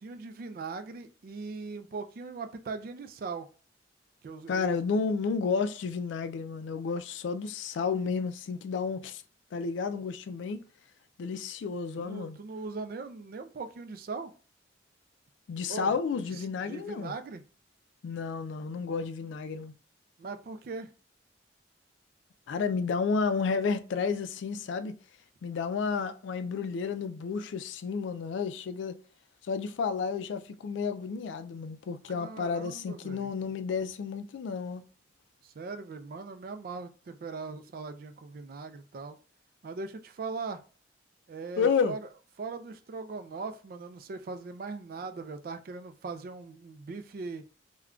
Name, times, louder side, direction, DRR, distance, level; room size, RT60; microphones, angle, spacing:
voice 1, 0.0-3.5 4.2-4.8 12.0-14.3 15.7-15.9 16.3-17.4 20.2-20.9 32.1-33.3 35.4-39.2 39.6-40.6 41.3-42.0 42.4-47.5, right 4 dB, 50° right, 0.3 m, -40 dB
voice 2, 4.5-9.2 9.5-10.6 11.2-12.4 15.5-17.1 18.0-19.7 22.5-25.0 25.4-29.0 29.4-34.9 41.6-42.0, left 5 dB, 80° left, 0.3 m, -31 dB
3.6 x 2.2 x 2.3 m
head